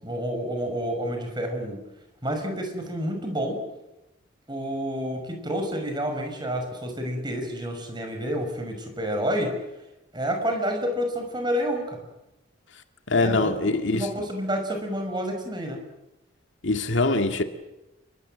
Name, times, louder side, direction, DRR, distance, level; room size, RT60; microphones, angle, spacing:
voice 1, 0.0-1.8 2.2-3.6 4.5-9.5 10.1-12.0 13.2-15.8, equal, 20° right, 5.8 m, -29 dB
voice 2, 13.1-14.1 16.6-17.4, left 2 dB, 70° left, 2.1 m, -23 dB
27.5 x 23.5 x 7.7 m
head